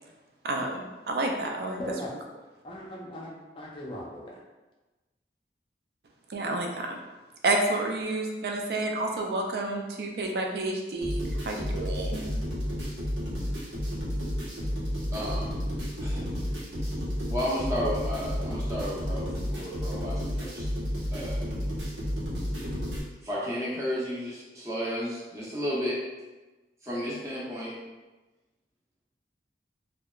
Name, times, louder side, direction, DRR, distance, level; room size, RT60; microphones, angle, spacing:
voice 1, 0.4-1.8 6.3-7.0 7.4-12.2, right 2 dB, 60° right, 2 dB, 0.3 m, -30 dB
voice 2, 1.8-2.1 2.6-4.4, equal, 30° left, -3 dB, 0.4 m, -38 dB
sound 1, 11.0-23.0, equal, 85° right, 0.7 m, -31 dB
voice 3, 15.1-15.5 16.0-16.2 17.3-20.7 21.1-21.4 23.2-26.0 26.8-27.7, equal, 15° right, -7 dB, 0.6 m, -32 dB
2.7 x 2.1 x 2.3 m, 1.2 s
head